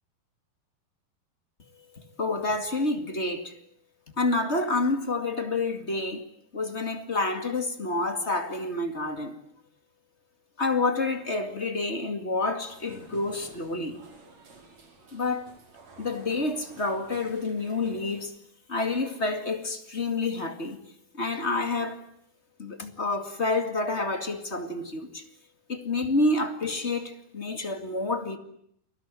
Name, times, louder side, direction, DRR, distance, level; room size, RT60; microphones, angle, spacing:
voice 1, 2.2-3.5 4.2-6.2 6.5-9.3 10.6-14.0 15.1-15.5 16.0-18.3 18.7-20.8 21.1-22.0 22.6-25.2 25.7-28.4, left 2 dB, 25° left, 1.7 m, -28 dB
sound 1, 12.6-18.3, right 3 dB, 45° right, 5.3 m, -52 dB
30.0 x 22.5 x 7.6 m
omnidirectional pair, 4.4 m